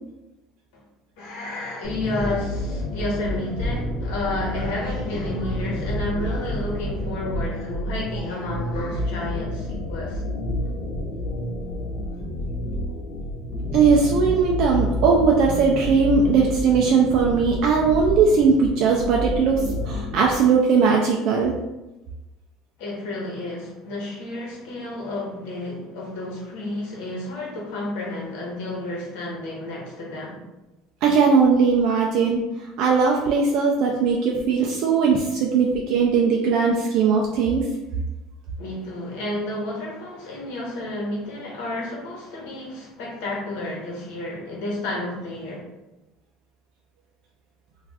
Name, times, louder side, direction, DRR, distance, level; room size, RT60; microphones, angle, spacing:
voice 1, 1.2-10.2 22.8-30.4 38.6-45.7, left 2 dB, 80° left, -3 dB, 1.0 m, -31 dB
sound 1, 1.8-20.3, left 1 dB, 55° left, 0.5 m, -29 dB
voice 2, 13.7-21.5 31.0-32.4 32.8-37.7, right 5 dB, 55° right, -1 dB, 0.3 m, -19 dB
2.4 x 2.4 x 3.3 m, 1.0 s
cardioid pair, 155°, 0 cm